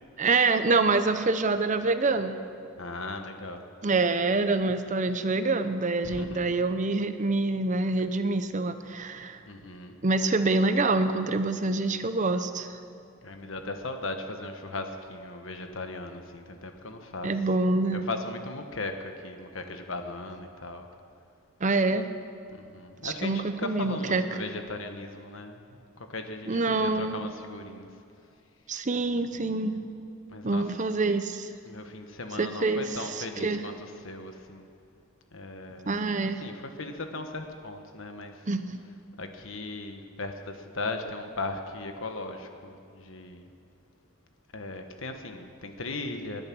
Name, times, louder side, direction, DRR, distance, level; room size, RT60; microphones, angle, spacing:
voice 1, 0.2-2.4 3.8-9.4 10.0-12.8 17.2-18.0 21.6-22.1 23.0-24.3 26.5-27.3 28.7-29.8 30.4-31.5 32.3-33.6 35.9-36.4 38.5-38.7, right 3 dB, 35° right, 10 dB, 0.7 m, -26 dB
voice 2, 2.8-3.6 6.0-6.6 9.5-9.9 13.2-17.3 17.9-20.9 22.5-25.6 26.0-27.9 30.3-30.6 31.7-34.7 35.3-35.9 36.2-38.3 39.2-43.5 44.5-46.4, left 2 dB, 65° left, 6 dB, 1.4 m, -37 dB
21.0 x 11.0 x 6.2 m, 2.5 s
head